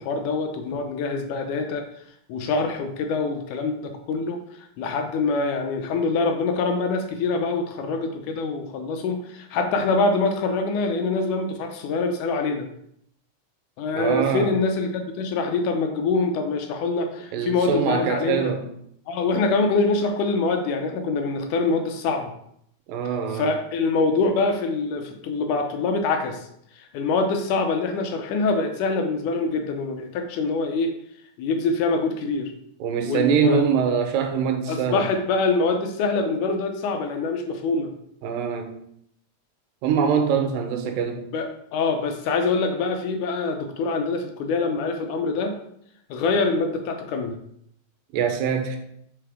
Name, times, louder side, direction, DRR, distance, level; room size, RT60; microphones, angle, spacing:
voice 1, 0.0-1.9 2.3-4.4 4.8-12.7 13.8-18.5 19.1-22.3 23.3-26.5 26.7-30.9 31.4-32.5 33.1-33.7 34.7-37.9 41.3-45.6 46.1-47.4, left 3 dB, 75° left, 5 dB, 2.1 m, -24 dB
voice 2, 13.9-14.5 17.3-18.7 22.9-23.5 32.8-35.1 38.2-38.7 39.8-41.2 48.1-48.8, right 6 dB, 90° right, 6 dB, 2.6 m, -23 dB
6.6 x 5.8 x 3.6 m, 0.72 s
omnidirectional pair, 3.8 m